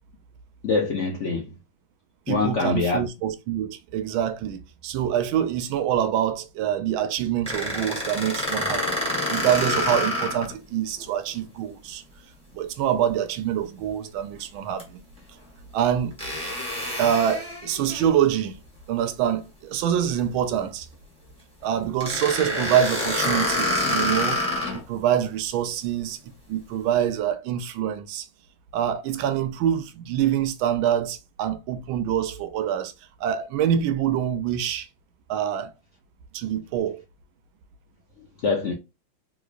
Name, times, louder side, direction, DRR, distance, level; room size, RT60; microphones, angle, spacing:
voice 1, 0.6-1.5 2.3-3.0 22.5-22.7 38.2-38.7, left 4 dB, 90° left, 0.6 m, -25 dB
voice 2, 2.3-12.0 12.5-15.0 15.7-16.1 17.0-18.6 18.9-20.9 21.6-24.4 24.7-26.2 26.5-28.3 28.7-32.9 33.2-34.9 35.3-35.7 36.3-37.0, right 10 dB, 90° right, 1.4 m, -25 dB
sound 1, 7.5-10.5 11.0-11.1 14.8-14.9 16.2-18.1 22.0-24.8, left 1 dB, 5° left, 1.1 m, -27 dB
3.6 x 3.0 x 2.4 m
omnidirectional pair, 2.1 m